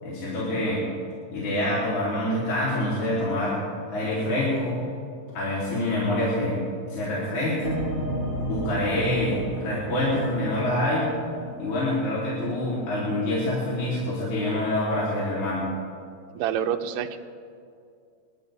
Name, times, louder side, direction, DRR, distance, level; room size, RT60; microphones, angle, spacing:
voice 1, 0.0-0.8 1.3-3.6 3.9-4.7 5.3-6.6 6.9-7.8 8.4-11.1 11.6-15.7, left 1 dB, 65° left, -8 dB, 4.6 m, -26 dB
sound 1, 7.6-13.2, right 1 dB, 35° left, 3.6 m, -34 dB
voice 2, 16.4-17.2, right 9 dB, 85° right, 7 dB, 2.4 m, -27 dB
30.0 x 13.0 x 3.5 m, 2.4 s
omnidirectional pair, 3.7 m